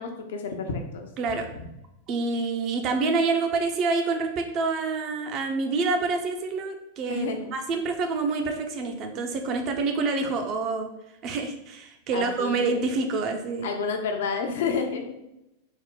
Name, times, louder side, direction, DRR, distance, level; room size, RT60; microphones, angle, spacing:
voice 1, 0.0-1.1 1.5-1.7 7.1-7.5 12.1-12.8 13.6-15.1, left 5 dB, 60° left, 5 dB, 0.5 m, -30 dB
voice 2, 2.1-10.9 11.2-13.7, right 4 dB, 35° right, 5 dB, 0.5 m, -27 dB
3.6 x 2.1 x 3.8 m, 0.89 s
figure-of-eight pair, 90°, 0 cm